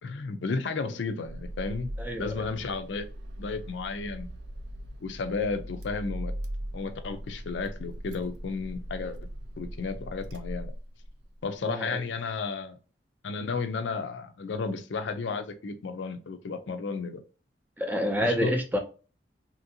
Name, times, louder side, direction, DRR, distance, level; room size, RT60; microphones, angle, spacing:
voice 1, 0.0-1.9 2.2-3.1 3.4-4.3 5.0-6.3 6.7-9.2 9.6-10.7 11.4-12.8 13.2-17.2 18.2-18.5, left 4 dB, 80° left, 0.4 m, -33 dB
Car / Engine starting, 1.2-11.3, equal, 65° right, 0.4 m, -39 dB
voice 2, 2.0-2.4 11.6-12.0 17.8-18.8, equal, 10° right, 0.4 m, -28 dB
2.8 x 2.6 x 2.7 m
head